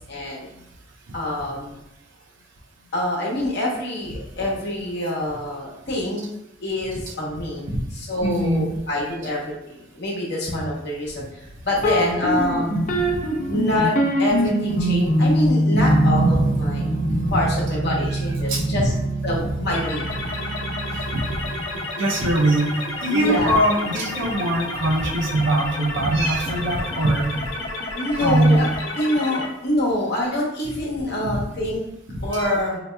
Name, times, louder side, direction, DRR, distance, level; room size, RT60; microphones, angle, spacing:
voice 1, 0.1-0.5 1.1-1.7 2.9-6.3 6.6-12.8 13.5-13.9 14.2-16.8 17.3-18.9 19.2-20.0 23.1-23.6 27.9-28.7 28.9-31.8 32.2-32.8, left 1 dB, 60° left, -3 dB, 1.0 m, -26 dB
voice 2, 8.2-8.7 16.3-16.4 17.1-17.2 18.5-18.7 22.0-27.4 28.1-28.6 32.1-32.5, right 1 dB, 65° right, -1 dB, 0.5 m, -22 dB
sound 1, 11.8-21.6, right 1 dB, 40° left, 0.5 m, -23 dB
sound 2, 19.7-29.5, left 2 dB, 90° left, 0.8 m, -31 dB
4.1 x 2.8 x 2.2 m, 0.83 s
head